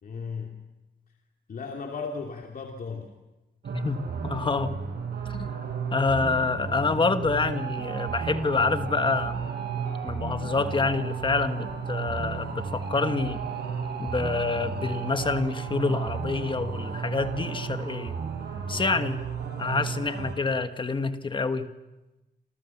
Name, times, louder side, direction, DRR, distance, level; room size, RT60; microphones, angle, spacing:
voice 1, 0.0-0.6 1.5-3.1, left 5 dB, 55° left, 1 dB, 2.8 m, -35 dB
sound 1, 3.6-20.3, right 6 dB, 70° right, 5.6 m, -33 dB
voice 2, 3.7-4.8 5.3-5.6 5.9-9.5 10.0-13.4 14.0-18.2 18.7-19.3 19.6-21.7, left 4 dB, 25° left, 9 dB, 1.4 m, -27 dB
28.5 x 28.0 x 7.3 m, 1.1 s
wide cardioid pair, 150°, 18 cm